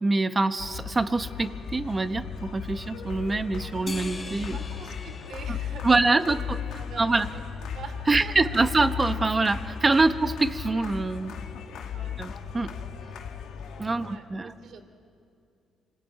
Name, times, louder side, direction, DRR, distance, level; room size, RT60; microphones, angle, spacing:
voice 1, 0.0-4.6 5.8-6.6 7.0-7.3 8.1-11.3 12.2-12.7 13.8-14.5, right 3 dB, 25° right, 10 dB, 1.1 m, -25 dB
sound 1, 0.6-14.2, left 7 dB, 85° left, 1.7 m, -36 dB
sound 2, 3.9-6.6, left 3 dB, 35° left, 4.8 m, -42 dB
voice 2, 4.5-8.8 9.9-10.3 11.6-12.2 14.0-14.8, right 5 dB, 65° right, 7 dB, 2.7 m, -45 dB
26.5 x 19.5 x 9.1 m, 2.5 s
cardioid pair, 90°, 0 cm